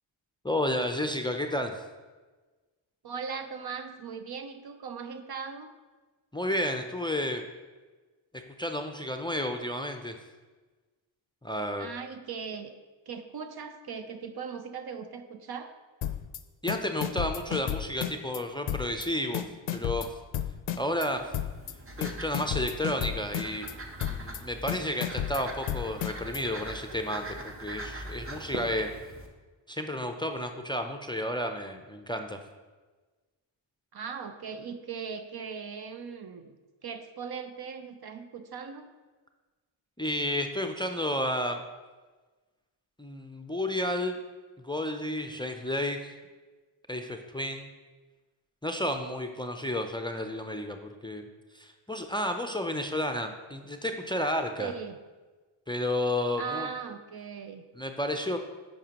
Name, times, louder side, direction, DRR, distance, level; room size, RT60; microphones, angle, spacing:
voice 1, 0.4-1.8 6.3-7.4 8.6-10.2 11.4-11.9 16.6-19.4 19.7-20.2 20.8-21.2 22.0-23.7 24.1-28.9 29.7-32.4 40.0-41.6 43.0-44.2 44.6-46.1 46.9-47.7 48.6-51.3 51.5-54.7 55.7-56.7 57.8-58.4, left 1 dB, 10° left, 5 dB, 0.5 m, -31 dB
voice 2, 3.0-5.7 11.8-12.7 13.1-15.7 33.9-36.6 36.8-38.9 54.6-55.0 56.4-57.6, right 6 dB, 50° right, 8 dB, 0.6 m, -39 dB
sound 1, 16.0-16.4 16.7-18.4 18.7-19.1 19.3-21.1 21.3-21.7 22.0-23.7 24.0-24.4 24.7-26.4, left 11 dB, 65° left, 0.5 m, -32 dB
sound 2, 20.8-29.3, right 1 dB, 25° right, 1.0 m, -42 dB
8.9 x 5.4 x 2.9 m, 1.3 s
cardioid pair, 55°, 48 cm